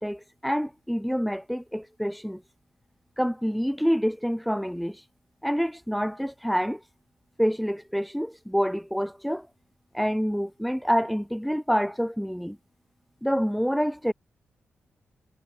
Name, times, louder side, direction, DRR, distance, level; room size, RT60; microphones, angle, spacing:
voice 1, 0.0-2.4 3.2-5.0 5.4-6.8 7.4-9.5 9.9-12.6 13.2-14.1, equal, ahead, 0.9 m, -27 dB
wide cardioid pair, 130°, 4 cm